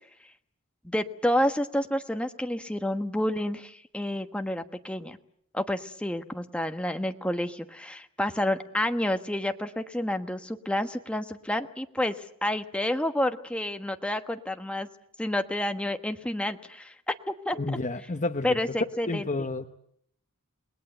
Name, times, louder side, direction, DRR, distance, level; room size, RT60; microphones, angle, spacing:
voice 1, 0.8-5.2 5.5-12.1 12.4-14.9 15.2-16.9 17.3-17.6 18.4-19.3, left 1 dB, 5° left, 6 dB, 1.2 m, -29 dB
voice 2, 17.5-18.6 19.1-19.7, left 2 dB, 35° left, 6 dB, 0.9 m, -30 dB
29.5 x 20.0 x 8.0 m, 0.71 s
head